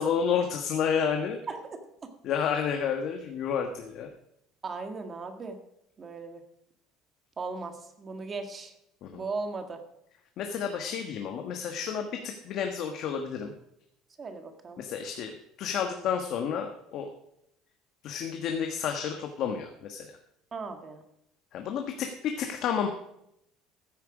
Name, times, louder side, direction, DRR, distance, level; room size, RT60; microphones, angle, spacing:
voice 1, 0.0-1.4 2.2-4.1 9.0-9.2 10.4-13.5 14.8-17.1 18.0-20.1 21.5-22.9, left 7 dB, 50° left, 4 dB, 1.3 m, -30 dB
voice 2, 1.5-2.1 4.6-5.6 6.0-6.4 7.4-8.7 9.1-9.8 14.2-14.8 20.5-21.0, right 4 dB, 25° right, 6 dB, 1.7 m, -37 dB
15.0 x 9.3 x 4.9 m, 0.79 s
cardioid pair, 155°, 0 cm